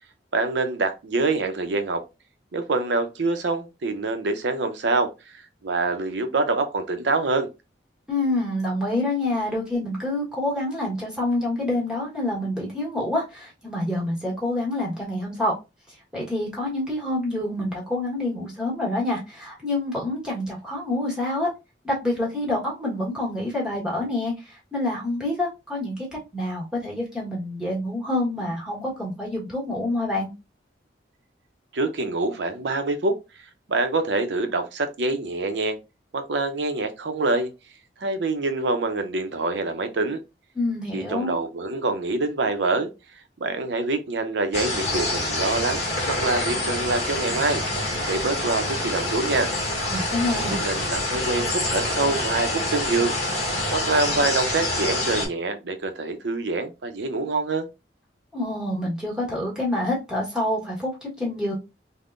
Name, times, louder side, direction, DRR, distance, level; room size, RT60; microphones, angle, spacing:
voice 1, 0.3-2.0 2.5-7.5 31.7-33.2 33.7-35.8 36.1-37.5 38.0-40.2 40.9-42.9 43.4-47.6 48.1-49.5 50.3-53.2 53.7-57.7, right 3 dB, 85° right, 0.6 m, -25 dB
voice 2, 8.1-15.5 15.9-21.5 21.8-26.1 26.3-30.3 40.5-41.3 49.9-50.6 58.3-61.5, left 1 dB, 5° right, 1.2 m, -27 dB
sound 1, 44.5-55.3, left 1 dB, 40° left, 1.2 m, -26 dB
3.5 x 2.1 x 2.4 m
head